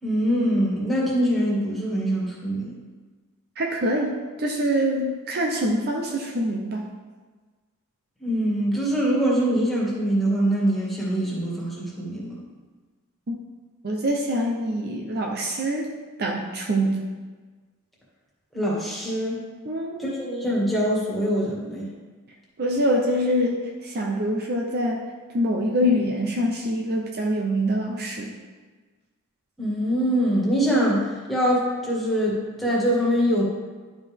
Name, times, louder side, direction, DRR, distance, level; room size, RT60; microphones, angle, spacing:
voice 1, 0.0-2.7 8.2-12.4 18.5-19.4 20.0-21.9 29.6-33.4, equal, ahead, -6 dB, 1.8 m, -23 dB
voice 2, 3.6-6.9 13.3-13.4 13.8-15.9 16.2-17.1 19.7-20.1 22.6-25.1 25.3-28.3, equal, 45° right, 0 dB, 0.7 m, -25 dB
11.0 x 5.1 x 3.5 m, 1.4 s
head